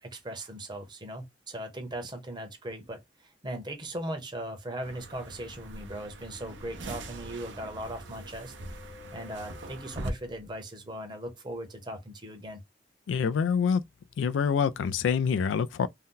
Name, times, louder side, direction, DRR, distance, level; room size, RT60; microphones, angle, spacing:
voice 1, 0.0-8.5 9.1-12.6, right 1 dB, 25° right, 0.8 m, -39 dB
sound 1, 4.8-10.1, right 1 dB, 80° right, 0.7 m, -42 dB
sound 2, 5.9-10.5, left 4 dB, 70° left, 0.9 m, -54 dB
voice 2, 13.1-13.8 14.2-15.9, left 6 dB, 90° left, 0.3 m, -26 dB
2.6 x 2.2 x 3.7 m
head